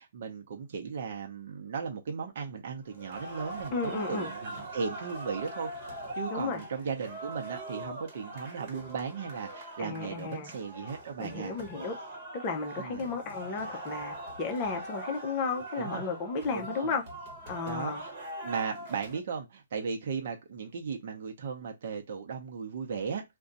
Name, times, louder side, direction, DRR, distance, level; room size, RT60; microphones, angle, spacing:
voice 1, 0.0-11.5 12.8-13.1 15.8-16.0 16.5-16.9 17.7-18.1 18.4-23.2, right 5 dB, 55° right, 0.7 m, -36 dB
sound 1, 2.9-19.2, right 1 dB, 30° right, 1.1 m, -42 dB
voice 2, 3.7-4.3 6.3-6.6 9.8-10.5 11.2-11.9 12.3-17.0 17.5-18.0, left 4 dB, 25° left, 0.6 m, -33 dB
2.5 x 2.2 x 3.8 m
hypercardioid pair, 160°, 0 cm